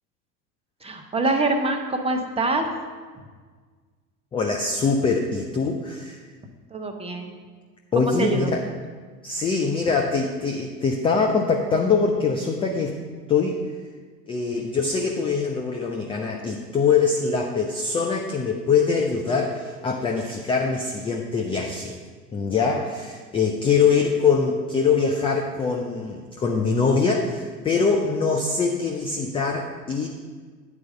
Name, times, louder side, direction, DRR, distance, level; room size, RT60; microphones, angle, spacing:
voice 1, 0.8-2.7 6.7-7.4 8.2-8.5, right 2 dB, 10° right, 4 dB, 0.9 m, -25 dB
voice 2, 4.3-6.2 7.9-8.6 9.2-13.0 13.3-13.6 14.3-22.0 22.3-30.1, left 5 dB, 10° left, 2 dB, 0.4 m, -23 dB
8.9 x 4.8 x 6.5 m, 1.5 s
figure-of-eight pair, 75°, 48 cm